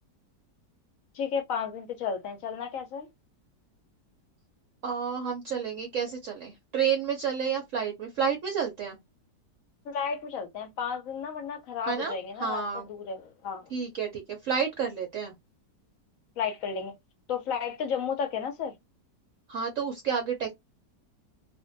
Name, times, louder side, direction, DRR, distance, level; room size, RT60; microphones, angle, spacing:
voice 1, 1.1-3.1 9.8-13.7 16.4-16.9 17.3-18.7, left 6 dB, 60° left, 0.9 m, -33 dB
voice 2, 4.8-9.0 11.9-12.9 13.7-15.3 19.5-20.5, right 7 dB, 65° right, 0.8 m, -30 dB
2.6 x 2.5 x 2.5 m
omnidirectional pair, 1.9 m